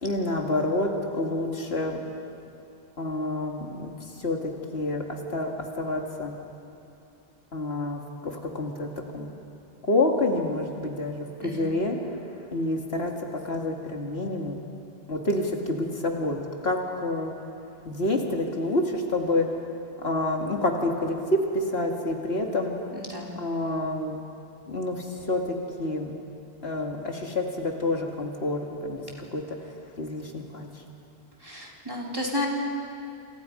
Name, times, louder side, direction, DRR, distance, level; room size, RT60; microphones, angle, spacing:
voice 1, 0.0-2.0 3.0-6.3 7.5-9.3 9.8-12.0 12.5-14.6 15.1-17.3 17.8-19.5 20.0-22.7 23.4-24.2 24.7-26.1 26.6-30.7, left 2 dB, 80° left, 2 dB, 2.5 m, -28 dB
voice 2, 11.4-11.7 22.9-23.3 31.4-32.5, left 1 dB, 20° right, -2 dB, 3.5 m, -32 dB
28.0 x 28.0 x 5.2 m, 2.7 s
omnidirectional pair, 1.1 m